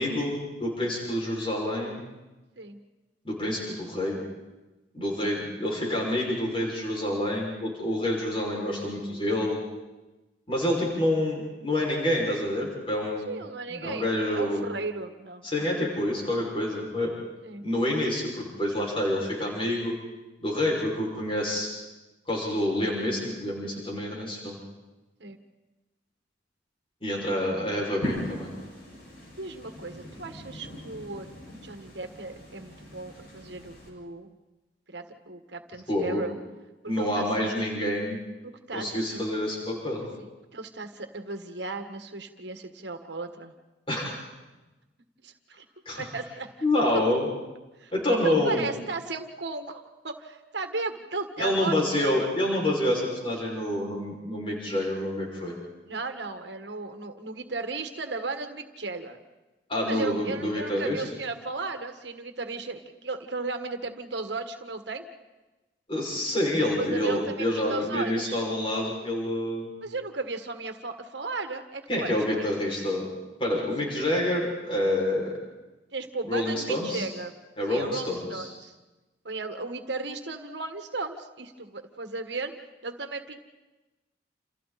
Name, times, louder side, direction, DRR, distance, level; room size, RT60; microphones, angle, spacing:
voice 1, 0.0-2.0 3.2-4.2 4.9-9.6 10.5-13.3 13.7-14.6 15.4-17.1 17.6-19.9 20.4-21.7 22.3-24.6 27.0-28.5 35.9-36.2 36.9-38.2 38.7-40.1 43.9-44.2 45.8-46.0 46.6-47.3 47.9-48.7 51.4-55.5 59.7-61.0 65.9-69.7 71.9-73.1 73.4-75.3 76.3-77.1 77.6-78.5, left 1 dB, 30° left, -3 dB, 6.1 m, -27 dB
voice 2, 13.3-15.7 17.4-17.6 25.2-25.4 29.4-34.3 34.9-36.3 36.8-37.5 38.4-39.2 40.2-43.5 45.2-45.6 46.0-46.5 46.9-47.0 47.8-52.3 55.9-59.2 59.9-65.1 66.8-68.4 69.8-72.5 73.6-73.7 75.9-77.3 77.7-78.7 79.2-82.5 82.8-83.4, right 3 dB, 70° right, 7 dB, 1.7 m, -35 dB
sound 1, 28.0-33.9, equal, 55° left, 6.7 m, -40 dB
29.0 x 28.5 x 4.3 m, 1.1 s
head